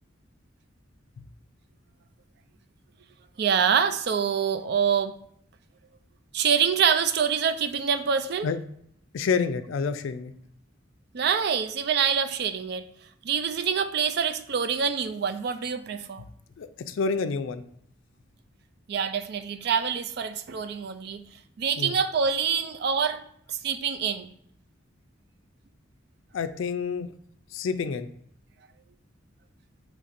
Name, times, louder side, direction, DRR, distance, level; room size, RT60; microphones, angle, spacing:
voice 1, 3.4-5.2 6.3-8.5 11.1-12.9 13.2-16.2 18.9-21.2 21.6-23.2 23.5-24.3, right 7 dB, 55° right, 0.4 m, -25 dB
voice 2, 9.1-10.3 16.6-17.6 21.8-21.9 26.3-27.1 27.5-28.1, left 5 dB, 80° left, 0.4 m, -28 dB
6.5 x 3.1 x 2.6 m
head